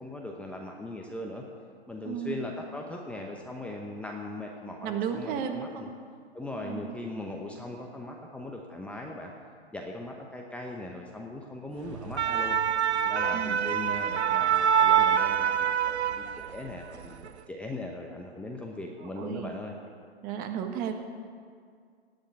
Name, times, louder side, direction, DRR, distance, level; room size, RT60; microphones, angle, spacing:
voice 1, 0.0-1.4 1.9-5.9 6.3-9.3 9.7-12.6 13.0-19.7, left 2 dB, 5° left, 0 dB, 0.9 m, -39 dB
voice 2, 2.0-2.4 4.8-5.9 6.6-6.9 13.3-13.8 19.0-19.5 20.2-20.9, right 8 dB, 30° right, 5 dB, 1.4 m, -34 dB
sound 1, 11.9-16.7 17.0-17.3, right 8 dB, 90° right, 0.7 m, -25 dB
17.5 x 6.6 x 9.5 m, 2.1 s
hypercardioid pair, 130°, 32 cm